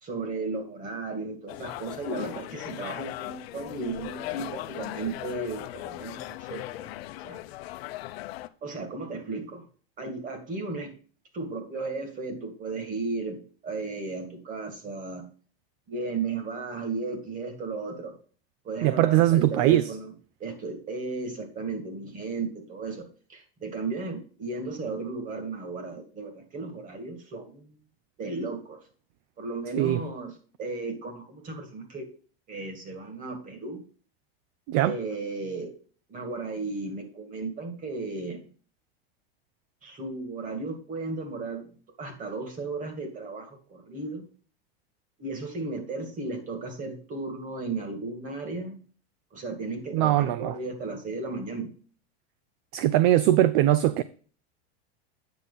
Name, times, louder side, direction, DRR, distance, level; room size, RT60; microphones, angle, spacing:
voice 1, 0.0-6.9 7.2-7.4 8.6-9.6 10.0-10.9 11.3-15.2 15.9-18.1 18.6-20.1 20.4-23.0 23.3-27.8 28.2-28.8 29.4-30.3 30.6-32.1 32.5-33.8 34.8-35.7 36.1-38.5 39.8-41.7 42.0-44.3 45.2-48.8 49.3-51.7, right 3 dB, 25° right, 2.3 m, -35 dB
sound 1, 1.5-8.5, left 16 dB, 70° left, 0.7 m, -38 dB
voice 2, 18.8-20.0 29.7-30.0 34.7-35.0 49.9-50.6 52.7-54.0, right 14 dB, 45° right, 0.5 m, -21 dB
9.3 x 6.3 x 4.0 m
supercardioid pair, 150°, 31 cm